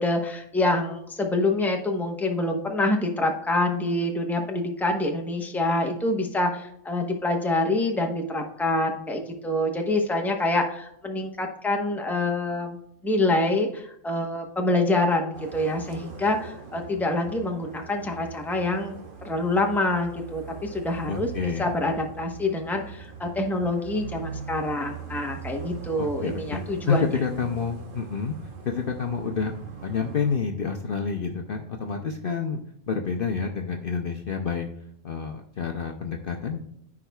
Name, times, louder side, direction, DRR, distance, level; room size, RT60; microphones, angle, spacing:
voice 1, 0.0-12.8 13.0-18.9 19.2-27.1, left 2 dB, ahead, 2 dB, 0.9 m, -26 dB
sound 1, 15.3-30.4, right 7 dB, 45° right, 1.2 m, -41 dB
voice 2, 21.1-21.7 26.0-28.3 28.6-29.6 29.8-32.6 32.9-34.7 35.0-36.6, left 5 dB, 50° left, 3 dB, 0.8 m, -28 dB
14.5 x 4.9 x 2.3 m, 0.76 s
omnidirectional pair, 1.4 m